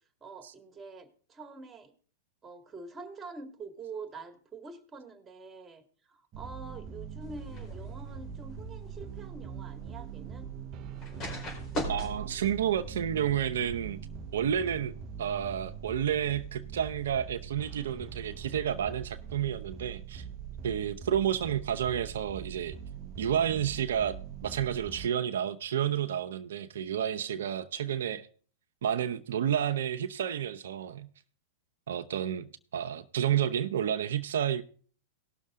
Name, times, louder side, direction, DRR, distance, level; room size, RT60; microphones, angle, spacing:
voice 1, 0.2-1.9 2.4-10.5, right 4 dB, 20° right, 2.0 m, -46 dB
sound 1, 6.3-25.1, right 7 dB, 40° right, 0.8 m, -43 dB
sound 2, 7.2-14.4, equal, 35° left, 4.6 m, -42 dB
voice 2, 11.9-14.0 14.3-20.2 20.6-22.8 23.2-28.3 28.8-31.1 31.9-34.6, right 9 dB, 75° right, 0.7 m, -30 dB
18.0 x 6.5 x 3.7 m
hypercardioid pair, 120°, 0 cm